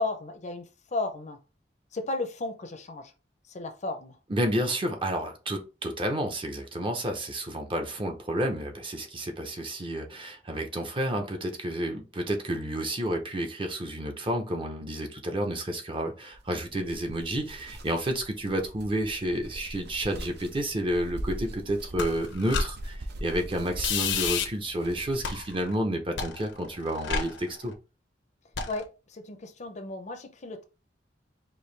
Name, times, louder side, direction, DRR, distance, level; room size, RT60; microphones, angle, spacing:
voice 1, 0.0-1.4 1.9-3.1 3.5-4.2 28.7-30.6, left 2 dB, 40° left, 0.6 m, -34 dB
voice 2, 4.3-27.7, right 1 dB, 30° right, 0.7 m, -30 dB
sound 1, 16.3-25.6, right 1 dB, 60° right, 0.7 m, -41 dB
sound 2, 22.0-22.7 23.8-24.4 25.2-25.7 26.2-27.7 28.6-28.8, left 5 dB, 85° left, 0.8 m, -30 dB
4.6 x 2.7 x 3.2 m
head